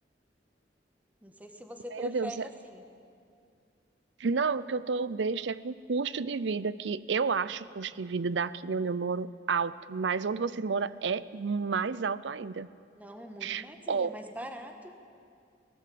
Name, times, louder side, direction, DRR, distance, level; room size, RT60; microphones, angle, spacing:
voice 1, 1.2-2.8 12.9-14.9, equal, 10° right, 5 dB, 1.5 m, -43 dB
voice 2, 1.9-2.4 4.2-12.7 13.4-14.1, right 5 dB, 75° right, 18 dB, 0.6 m, -31 dB
18.5 x 18.0 x 8.6 m, 2.3 s
head